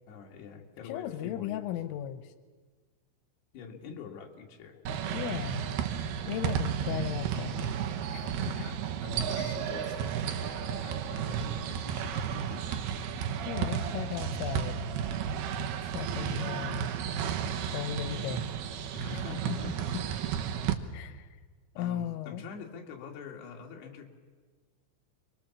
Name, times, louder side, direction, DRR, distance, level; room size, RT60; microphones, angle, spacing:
voice 1, 0.1-1.7 3.5-5.2 8.5-12.8 18.9-20.0 21.8-24.1, left 5 dB, 60° left, 1 dB, 4.0 m, -46 dB
voice 2, 0.9-2.3 5.1-5.7 6.3-7.8 8.1-8.6 9.4-9.6 13.5-14.8 15.8-16.9 17.7-18.5 19.1-19.7 20.9-21.3 21.8-22.4, left 11 dB, 90° left, 11 dB, 3.5 m, -36 dB
sound 1, 4.9-20.7, right 8 dB, 70° right, 2.6 m, -33 dB
28.0 x 22.0 x 7.2 m, 1.4 s
omnidirectional pair, 5.6 m